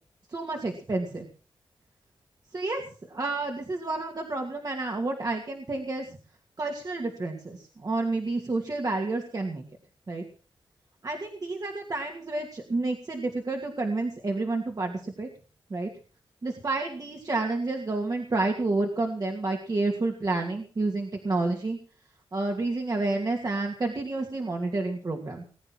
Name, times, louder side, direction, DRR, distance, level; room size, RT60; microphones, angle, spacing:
voice 1, 0.3-1.3 2.5-6.2 6.6-9.6 10.1-10.2 11.0-15.3 15.7-15.9 16.4-21.8 22.3-25.4, right 2 dB, 45° right, 2 dB, 2.6 m, -30 dB
20.5 x 9.2 x 6.1 m, 0.39 s
cardioid pair, 70°, 9 cm